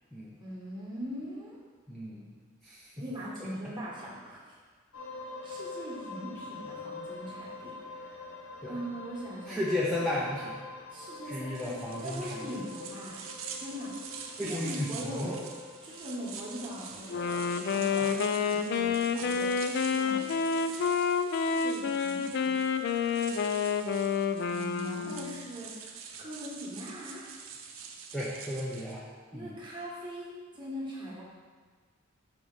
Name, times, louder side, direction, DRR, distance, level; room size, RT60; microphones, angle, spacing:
voice 1, 0.4-1.6 3.0-4.6 5.4-8.2 8.6-9.6 10.9-11.7 12.0-13.2 13.5-13.9 14.4-15.4 15.8-19.5 19.9-20.2 21.2-22.5 24.4-25.9 26.2-27.3 29.3-31.2, equal, 25° right, -6 dB, 1.5 m, -41 dB
voice 2, 1.9-2.3 2.6-3.1 8.6-8.7 9.5-10.5 11.3-12.4 14.4-15.3 18.0-18.2 28.1-29.0 29.3-29.5, left 1 dB, 5° left, -8 dB, 0.6 m, -34 dB
sound 1, 4.9-20.9, left 3 dB, 75° left, 0.8 m, -46 dB
sound 2, 11.5-29.0, right 6 dB, 80° right, 0.6 m, -45 dB
Wind instrument woodwind instrument, 17.1-25.4, left 6 dB, 55° left, 0.3 m, -29 dB
5.9 x 3.3 x 5.5 m, 1.5 s
head